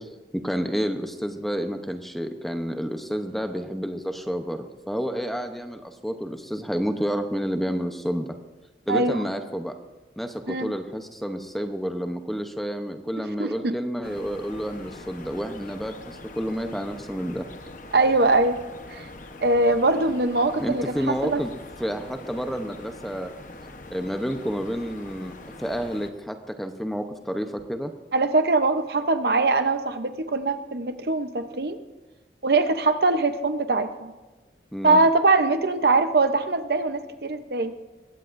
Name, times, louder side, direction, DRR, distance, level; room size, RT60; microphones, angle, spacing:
voice 1, 0.0-8.3 8.9-9.7 10.2-17.5 20.6-21.5 21.8-23.3 23.9-27.9 34.7-35.1, equal, ahead, 6 dB, 0.8 m, -30 dB
voice 2, 8.9-9.2 10.5-10.7 13.4-13.7 17.9-18.6 18.9-19.0 19.4-21.4 28.1-31.8 32.4-34.1 34.8-37.7, right 3 dB, 65° right, 9 dB, 0.8 m, -22 dB
sound 1, 14.0-26.1, left 2 dB, 45° left, 1.0 m, -43 dB
21.5 x 16.5 x 2.6 m, 1.2 s
head